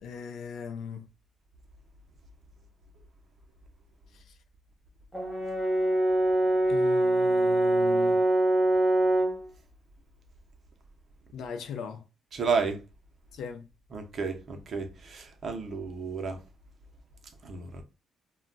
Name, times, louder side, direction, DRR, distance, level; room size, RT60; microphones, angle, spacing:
voice 1, 0.0-1.1 4.1-4.4 6.7-8.2 11.3-12.0 13.3-13.7, left 6 dB, 75° left, 0.5 m, -39 dB
Brass instrument, 5.1-9.4, right 1 dB, ahead, 0.9 m, -24 dB
voice 2, 12.3-12.8 13.9-16.4 17.4-17.8, right 5 dB, 50° right, 0.7 m, -32 dB
2.3 x 2.2 x 3.8 m
cardioid pair, 90°, 0 cm